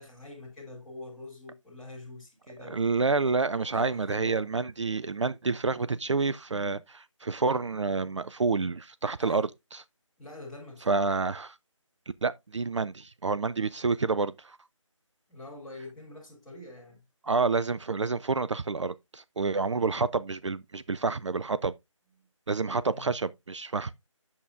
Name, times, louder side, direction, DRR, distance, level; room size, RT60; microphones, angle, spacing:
voice 1, 0.0-2.9 3.5-4.5 9.2-9.5 10.2-11.1 15.3-17.0 19.7-20.0 22.2-22.3 22.9-23.1, left 2 dB, ahead, 1.7 m, -45 dB
voice 2, 2.6-9.5 10.9-11.6 12.2-14.6 17.2-21.7 22.5-23.9, right 4 dB, 65° right, 0.4 m, -28 dB
8.6 x 7.1 x 2.5 m
figure-of-eight pair, 160°, 17 cm